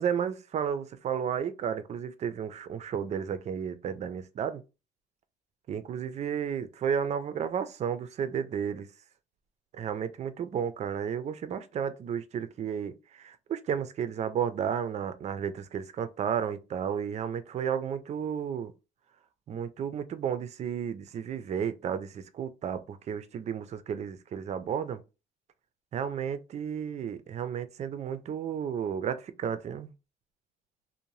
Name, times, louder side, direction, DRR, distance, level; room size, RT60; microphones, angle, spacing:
voice 1, 0.0-4.6 5.7-8.9 9.7-18.7 19.5-25.0 25.9-29.9, right 8 dB, 40° right, 0.4 m, -32 dB
2.6 x 2.1 x 3.0 m
cardioid pair, 110°, 17 cm